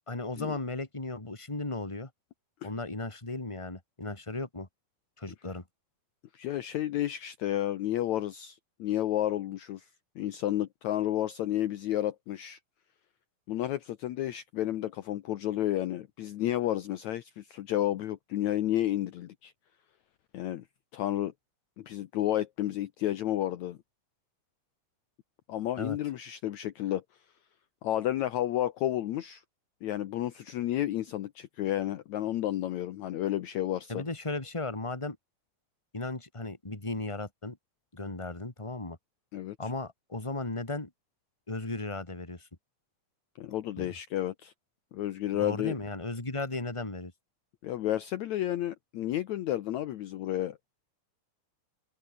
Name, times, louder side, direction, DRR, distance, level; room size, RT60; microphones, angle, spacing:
voice 1, 0.1-2.1 2.6-4.7 5.2-5.6 25.8-26.0 33.9-35.2 35.9-37.6 37.9-39.0 39.6-40.9 41.5-42.5 43.8-43.9 45.3-47.1, left 2 dB, 10° left, 2.9 m, -36 dB
voice 2, 6.3-9.9 10.2-12.6 13.5-19.5 20.3-20.6 20.9-21.3 21.8-23.8 25.5-27.0 27.8-29.4 29.8-34.0 39.3-39.6 43.4-44.5 44.9-45.8 47.6-50.6, left 13 dB, 70° left, 2.1 m, -31 dB
omnidirectional pair, 3.9 m